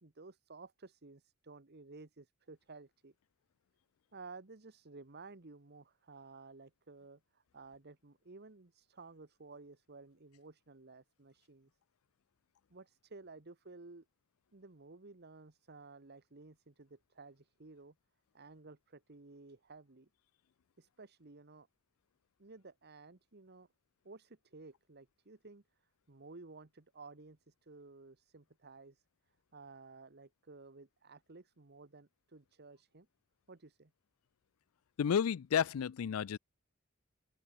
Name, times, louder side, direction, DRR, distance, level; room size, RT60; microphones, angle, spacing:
voice 1, 0.0-3.1 4.1-11.7 12.7-14.1 14.5-17.9 18.3-20.1 20.8-21.7 22.4-23.7 24.0-25.6 26.1-27.4 27.7-29.0 29.5-33.1 33.5-33.9, right 3 dB, 50° right, 1.3 m, -54 dB
voice 2, 35.0-36.4, left 8 dB, 85° left, 0.4 m, -31 dB
open air
head